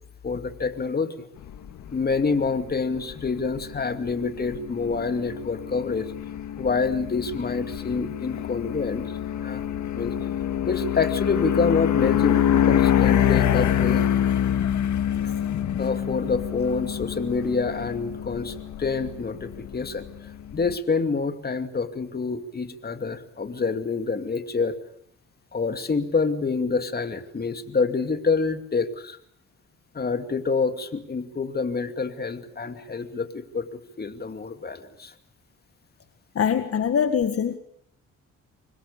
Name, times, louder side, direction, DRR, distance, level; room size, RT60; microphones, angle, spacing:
voice 1, 0.2-1.2 1.9-6.1 6.6-9.1 9.4-9.6 9.9-10.2 10.6-14.1 15.2-15.3 15.8-24.8 25.5-29.2 29.9-35.1, left 4 dB, 30° left, 8 dB, 2.5 m, -27 dB
sound 1, 1.4-20.7, left 10 dB, 70° left, 2.0 m, -26 dB
voice 2, 36.4-37.6, left 7 dB, 50° left, 9 dB, 1.8 m, -23 dB
26.0 x 20.5 x 8.5 m, 0.70 s
cardioid pair, 90°, 30 cm